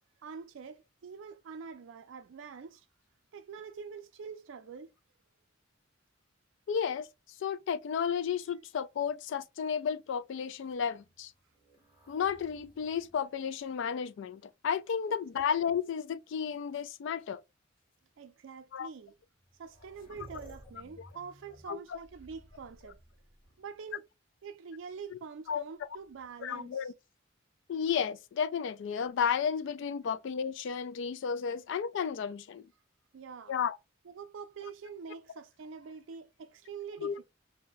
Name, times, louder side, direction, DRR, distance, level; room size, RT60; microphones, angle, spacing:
voice 1, 0.2-2.9 3.3-4.9 18.2-19.1 19.6-23.0 23.6-24.0 24.4-26.9 33.1-33.6 34.1-37.2, right 5 dB, 70° right, 0.4 m, -45 dB
voice 2, 6.7-7.1 7.4-11.3 12.1-17.4 18.7-18.9 21.7-22.0 25.1-25.2 25.5-25.6 26.4-26.9 27.7-32.7 33.5-33.8 37.0-37.1, left 7 dB, 65° left, 0.3 m, -33 dB
sound 1, 10.6-14.4 15.1-15.8 16.9-17.0 17.8-17.9 19.1-19.2 19.4-23.8 25.8-26.5, right 1 dB, 50° left, 1.5 m, -58 dB
2.7 x 2.1 x 3.8 m
head